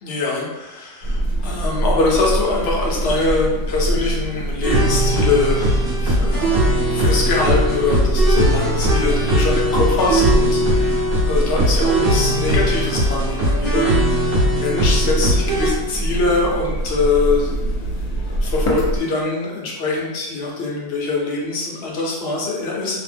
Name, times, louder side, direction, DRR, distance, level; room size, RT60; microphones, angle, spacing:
voice 1, 0.0-23.0, left 3 dB, 55° left, -3 dB, 0.8 m, -23 dB
sound 1, 1.0-19.0, right 1 dB, 90° left, 1.1 m, -24 dB
sound 2, 4.6-15.7, right 1 dB, 50° right, 0.9 m, -19 dB
2.8 x 2.0 x 3.3 m, 1.1 s
omnidirectional pair, 1.5 m